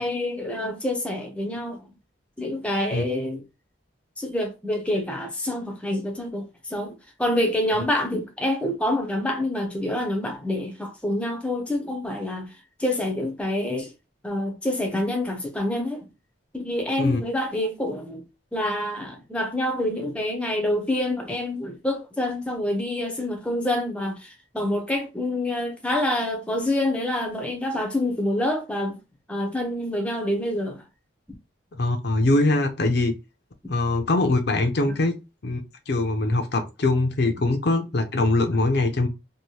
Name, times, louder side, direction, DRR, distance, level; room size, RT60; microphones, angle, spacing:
voice 1, 0.0-1.9 2.4-3.4 4.2-6.9 7.2-12.5 12.8-13.9 14.2-16.1 16.5-18.2 18.5-29.0 29.3-30.8 34.9-35.0, left 1 dB, 5° left, 0.5 m, -27 dB
voice 2, 31.8-33.2 33.7-35.2 35.4-35.6 35.9-39.1, left 2 dB, 55° left, 0.5 m, -22 dB
2.8 x 2.6 x 3.1 m
head